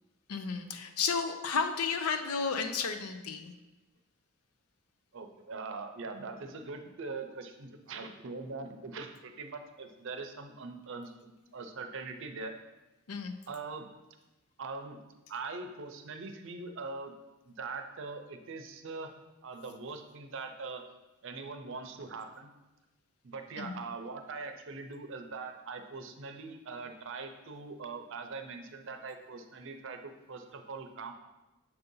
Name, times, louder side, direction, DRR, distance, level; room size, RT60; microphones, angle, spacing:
voice 1, 0.3-3.5 13.1-13.3 23.6-23.8, left 5 dB, 85° left, 8 dB, 0.5 m, -32 dB
voice 2, 5.1-12.5 13.5-13.9 14.6-15.0 15.3-17.1 17.4-19.1 19.4-20.8 21.2-22.5 23.2-31.1, right 4 dB, 60° right, 6 dB, 0.6 m, -42 dB
6.7 x 2.7 x 5.3 m, 1.0 s
head